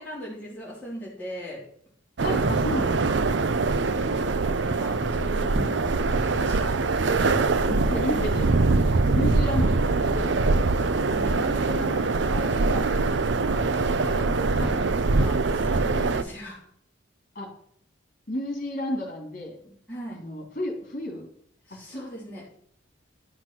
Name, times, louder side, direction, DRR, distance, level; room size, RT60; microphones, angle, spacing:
voice 1, 0.0-1.6 2.5-2.8 3.8-6.8 11.0-14.3 15.0-16.7 19.6-20.2 21.7-22.5, equal, 10° left, -8 dB, 3.4 m, -39 dB
voice 2, 2.2-3.2 3.6-3.8 5.5-5.7 7.2-10.7 14.0-15.2 17.3-17.5 18.3-19.6 20.1-21.3 21.7-22.0, left 1 dB, 40° left, 2 dB, 2.7 m, -33 dB
sound 1, 2.2-16.2, right 3 dB, 65° right, 0.5 m, -23 dB
sound 2, 5.5-11.7, right 1 dB, 15° right, 3.2 m, -41 dB
11.0 x 6.0 x 5.9 m, 0.66 s
head